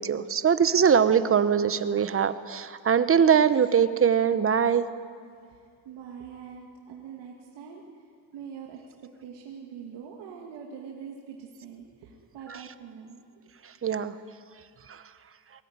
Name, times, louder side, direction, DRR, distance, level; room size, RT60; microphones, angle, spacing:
voice 1, 0.0-4.9 12.5-12.6 13.8-14.2 14.9-15.0, right 7 dB, 30° right, 12 dB, 1.1 m, -22 dB
voice 2, 5.8-7.8 8.3-13.4, right 7 dB, 75° right, -1 dB, 2.4 m, -43 dB
22.0 x 18.5 x 9.7 m, 2.2 s
cardioid pair, 115°, 42 cm